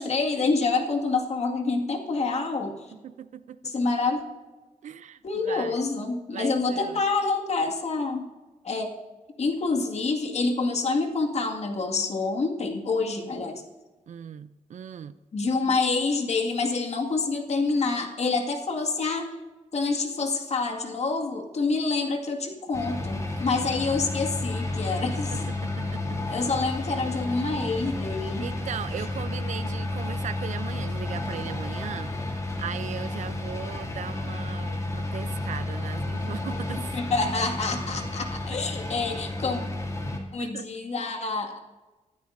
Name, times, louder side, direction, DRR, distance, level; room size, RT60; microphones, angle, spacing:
voice 1, 0.0-2.9 3.6-4.2 5.2-8.3 8.6-8.9 9.4-13.6 15.3-19.3 19.7-25.5 26.3-28.5 36.9-39.6 40.3-41.6, left 3 dB, 60° left, 2 dB, 2.1 m, -27 dB
voice 2, 3.0-3.8 4.8-5.8 6.3-7.0 14.1-15.2 23.3-23.4 25.3-26.5 28.4-37.1 40.4-40.7, right 8 dB, 70° right, 12 dB, 0.6 m, -38 dB
sound 1, 22.7-40.2, left 2 dB, 25° left, 2.7 m, -32 dB
25.0 x 12.5 x 2.7 m, 1.2 s
wide cardioid pair, 100°, 13 cm